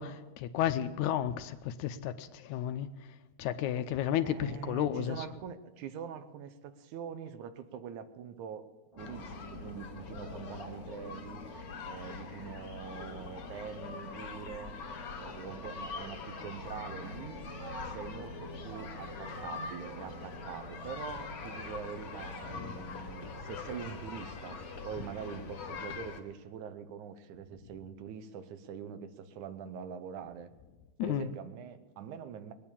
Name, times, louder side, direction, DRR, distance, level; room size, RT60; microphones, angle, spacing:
voice 1, 0.0-5.3 22.6-22.8 31.0-31.3, left 10 dB, 85° left, 9 dB, 2.1 m, -33 dB
voice 2, 4.2-8.7 9.0-11.4 11.8-14.8 15.1-17.4 17.8-30.5 31.0-32.5, right 8 dB, 90° right, 11 dB, 2.4 m, -44 dB
sound 1, 8.9-25.8, right 1 dB, 10° right, 1.4 m, -52 dB
sound 2, 9.0-26.2, left 5 dB, 55° left, 2.5 m, -43 dB
Boat Water vehicle, 15.2-24.4, right 2 dB, 60° right, 4.3 m, -52 dB
20.5 x 9.4 x 7.2 m, 1.2 s
omnidirectional pair, 3.4 m